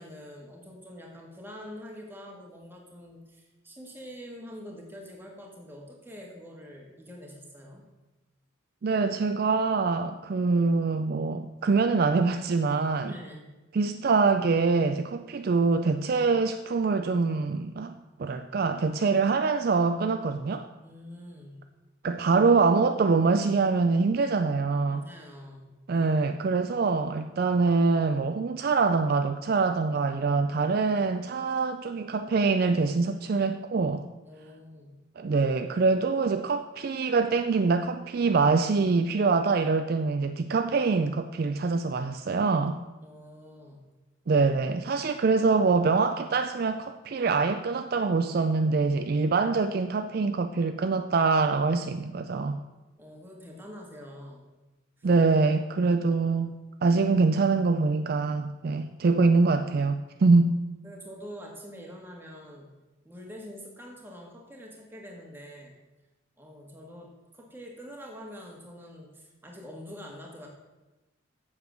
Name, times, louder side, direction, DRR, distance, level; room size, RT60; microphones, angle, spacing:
voice 1, 0.0-7.8 13.0-13.5 20.8-21.6 24.9-25.7 34.2-35.0 43.0-43.9 53.0-54.5 55.0-55.1 60.8-62.7 63.0-65.8 66.4-70.5, equal, 10° right, -1 dB, 1.7 m, -45 dB
voice 2, 8.8-13.1 13.7-20.7 22.0-25.0 25.9-34.1 35.2-42.8 44.3-52.6 55.0-56.5 56.8-60.6, right 4 dB, 45° right, 8 dB, 0.3 m, -24 dB
7.9 x 7.2 x 6.2 m, 1.1 s
head